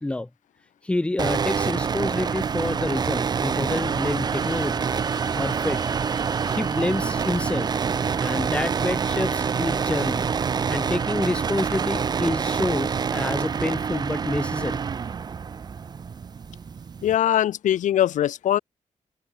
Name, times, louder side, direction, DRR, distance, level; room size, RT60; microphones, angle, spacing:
voice 1, 0.8-4.9 5.3-5.8 6.5-7.7 8.2-10.3 10.7-14.8, left 2 dB, 10° left, 0.6 m, -28 dB
sound 1, 1.2-17.2, right 6 dB, 35° right, 0.4 m, -26 dB
sound 2, 4.4-11.9, right 2 dB, 20° right, 7.6 m, -44 dB
voice 2, 17.0-18.6, left 11 dB, 75° left, 0.5 m, -21 dB
open air
cardioid pair, 115°, 13 cm